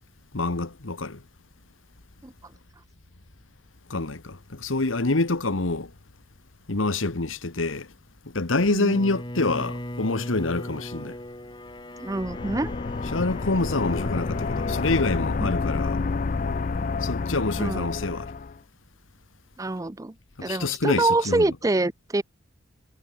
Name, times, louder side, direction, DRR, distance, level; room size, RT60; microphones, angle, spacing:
voice 1, 0.3-1.2 3.9-5.9 6.7-7.9 8.3-11.2 13.1-16.0 17.0-18.3 20.4-21.5, left 2 dB, 90° left, 1.5 m, -26 dB
Bowed string instrument, 8.9-15.2, equal, 25° left, 7.0 m, -37 dB
voice 2, 12.0-12.7 15.4-15.5 17.6-17.9 19.6-20.1 20.4-22.2, right 2 dB, 15° right, 0.5 m, -25 dB
sound 1, 12.1-18.6, left 4 dB, 40° left, 0.4 m, -29 dB
head